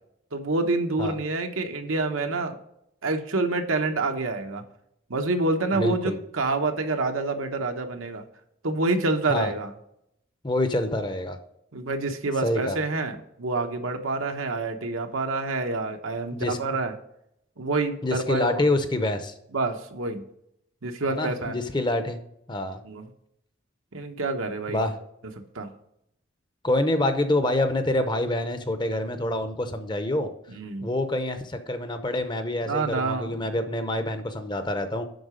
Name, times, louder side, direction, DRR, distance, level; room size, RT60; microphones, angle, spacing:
voice 1, 0.3-2.6 3.0-4.6 5.1-8.2 8.6-9.7 11.7-16.9 17.6-18.6 19.5-20.2 20.8-21.5 22.8-23.0 23.9-24.8 25.5-25.7 30.5-30.9 32.6-33.5, right 3 dB, 85° right, 5 dB, 1.0 m, -27 dB
voice 2, 5.7-6.2 9.3-9.5 10.4-11.4 12.4-12.8 16.3-16.6 18.0-19.3 21.1-22.2 22.5-22.8 24.7-24.9 26.6-30.3 30.8-35.1, left 1 dB, 20° left, 8 dB, 0.7 m, -26 dB
7.9 x 5.8 x 5.0 m, 0.77 s
head